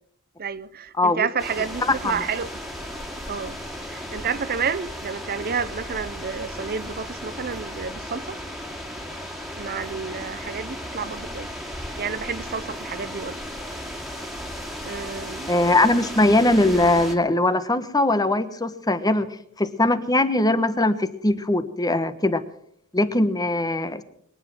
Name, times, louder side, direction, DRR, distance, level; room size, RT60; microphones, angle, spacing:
voice 1, 0.4-2.6 3.3-3.6 3.9-8.4 9.6-11.6 12.0-13.4 13.7-13.8 14.8-15.5, right 6 dB, 45° right, 0.7 m, -30 dB
sound 1, 1.4-17.2, equal, ahead, 2.4 m, -35 dB
voice 2, 15.5-19.3 19.6-22.4 22.9-24.0, left 2 dB, 15° left, 1.1 m, -21 dB
23.0 x 10.0 x 6.2 m
head